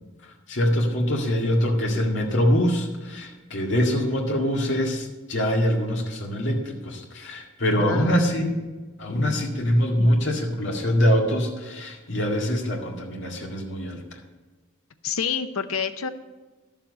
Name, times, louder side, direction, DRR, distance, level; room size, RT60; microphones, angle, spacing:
voice 1, 0.5-8.6 9.0-14.0, equal, 55° left, 0 dB, 2.0 m, -24 dB
voice 2, 7.8-8.4 9.1-9.4 10.0-10.2 15.0-16.1, left 6 dB, 80° left, 9 dB, 0.8 m, -29 dB
11.5 x 7.2 x 5.4 m, 1.3 s
head